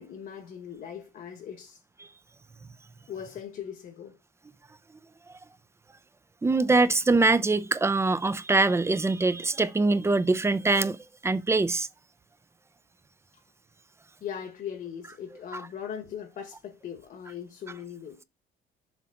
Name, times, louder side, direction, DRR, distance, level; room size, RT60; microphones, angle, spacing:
voice 1, 0.0-1.8 3.1-4.2 6.4-6.7 14.2-18.2, left 8 dB, 55° left, 1.4 m, -40 dB
voice 2, 6.4-11.0 11.2-11.9, right 3 dB, 15° right, 0.7 m, -23 dB
7.2 x 3.6 x 5.2 m
cardioid pair, 110°, 17 cm